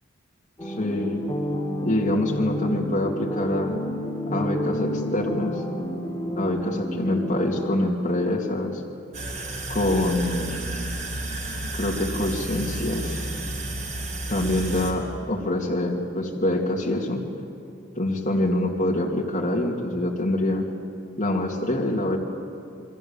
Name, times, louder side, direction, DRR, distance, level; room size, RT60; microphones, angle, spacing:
sound 1, 0.6-7.7, equal, 15° left, 3.3 m, -30 dB
voice 1, 0.7-1.2 1.8-3.7 4.3-5.5 6.4-8.8 9.7-10.5 11.7-13.2 14.3-17.2 17.9-20.6 21.2-22.2, left 1 dB, 40° left, -2 dB, 2.6 m, -25 dB
sound 2, 9.1-14.9, right 1 dB, 40° right, 4.4 m, -32 dB
29.5 x 23.5 x 7.3 m, 2.4 s
head